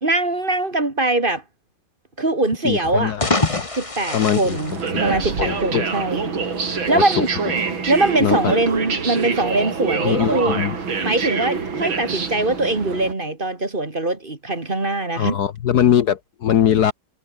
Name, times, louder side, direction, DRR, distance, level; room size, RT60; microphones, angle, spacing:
voice 1, 0.0-1.4 2.2-3.1 3.7-4.7 5.0-6.3 6.7-7.3 7.9-10.6 11.0-15.4, right 2 dB, 25° right, 2.4 m, -22 dB
voice 2, 2.6-3.2 3.5-3.6 4.1-4.6 5.1-5.8 6.9-7.3 8.2-8.5 10.0-10.8 15.1-16.9, left 9 dB, 60° left, 1.4 m, -21 dB
sound 1, 3.0-5.6, left 2 dB, 15° left, 1.8 m, -25 dB
sound 2, 4.5-13.1, right 5 dB, 85° right, 3.9 m, -25 dB
omnidirectional pair, 2.1 m